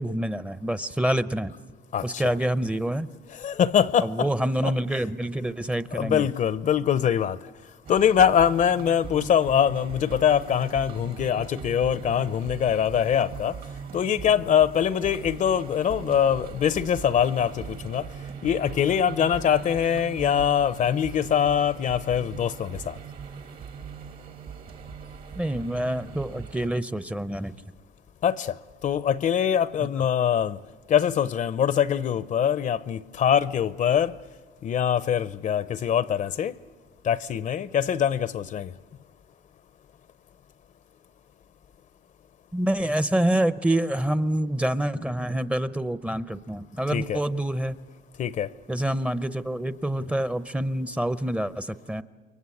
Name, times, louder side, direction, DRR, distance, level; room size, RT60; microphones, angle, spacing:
voice 1, 0.0-1.5 2.0-3.1 4.0-6.2 25.4-27.5 42.5-47.8 48.7-52.0, right 1 dB, 5° right, 0.7 m, -27 dB
voice 2, 1.9-2.3 3.4-4.3 4.6-4.7 5.9-7.4 7.9-13.5 13.9-18.0 18.4-22.9 28.2-28.5 28.8-30.6 30.9-34.1 34.6-36.5 37.0-38.7 46.9-47.2 48.2-48.5, left 8 dB, 50° left, 0.7 m, -23 dB
sound 1, 7.9-26.7, right 7 dB, 60° right, 2.2 m, -40 dB
29.0 x 23.0 x 8.5 m
cardioid pair, 110°, 17 cm